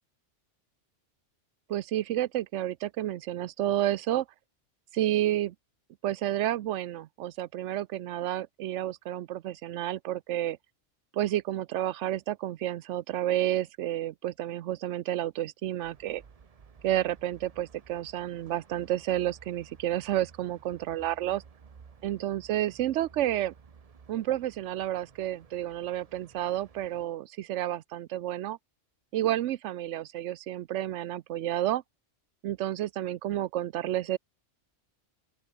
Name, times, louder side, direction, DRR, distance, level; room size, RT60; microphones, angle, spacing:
voice 1, 1.7-4.3 4.9-5.5 6.0-10.6 11.1-16.2 16.8-21.4 22.0-23.5 24.1-28.6 29.1-31.8 32.4-34.2, right 13 dB, 80° right, 0.9 m, -30 dB
sound 1, 15.8-27.0, right 6 dB, 35° right, 0.8 m, -55 dB
open air
omnidirectional pair, 1.2 m